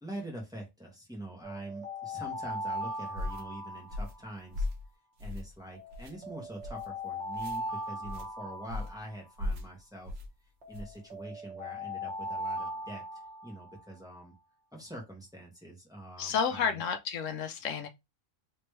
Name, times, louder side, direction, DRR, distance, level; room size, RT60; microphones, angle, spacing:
voice 1, 0.0-4.7 5.2-10.1 10.7-14.3 14.7-16.8, right 1 dB, 5° right, 1.2 m, -44 dB
sound 1, 1.4-4.6 5.7-9.5 10.6-13.8, equal, 60° right, 1.4 m, -39 dB
sound 2, 3.1-3.4 3.9-4.2 4.5-4.8 5.2-5.6 5.9-6.1 6.6-6.9 7.3-7.6 8.0-8.3 8.7-9.0 9.4-9.7 10.0-10.3 10.7-11.0, left 2 dB, 85° right, 1.2 m, -37 dB
voice 2, 16.2-17.9, left 6 dB, 75° left, 1.0 m, -31 dB
3.4 x 3.1 x 3.2 m
omnidirectional pair, 1.3 m